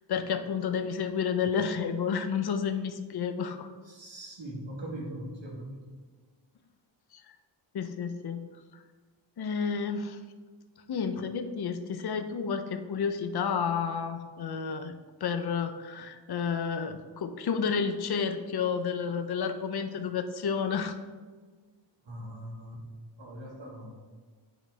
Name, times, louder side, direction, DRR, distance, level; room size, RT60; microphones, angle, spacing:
voice 1, 0.1-3.7 7.1-7.2 7.7-8.4 9.4-10.2 10.9-14.9 15.2-20.9, left 6 dB, 55° left, 8 dB, 0.6 m, -31 dB
voice 2, 3.8-6.0 22.1-22.8 23.2-23.9, right 1 dB, 65° right, -4 dB, 1.9 m, -41 dB
9.8 x 3.8 x 3.4 m, 1.4 s
wide cardioid pair, 100°, 47 cm